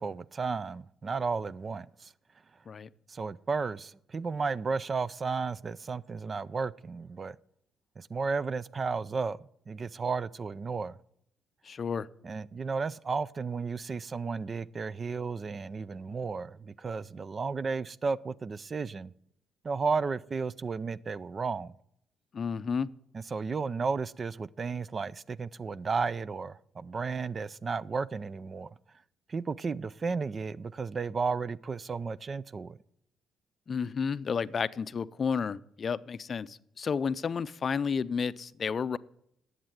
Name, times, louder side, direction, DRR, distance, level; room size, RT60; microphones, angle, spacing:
voice 1, 0.0-2.1 3.1-7.4 8.0-9.4 9.7-11.0 12.2-19.1 19.6-21.7 23.1-28.7 29.3-32.8, right 4 dB, 35° right, 0.4 m, -33 dB
voice 2, 11.6-12.1 22.3-22.9 33.7-39.0, left 6 dB, 45° left, 0.5 m, -31 dB
11.0 x 8.1 x 8.9 m
cardioid pair, 90°, 0 cm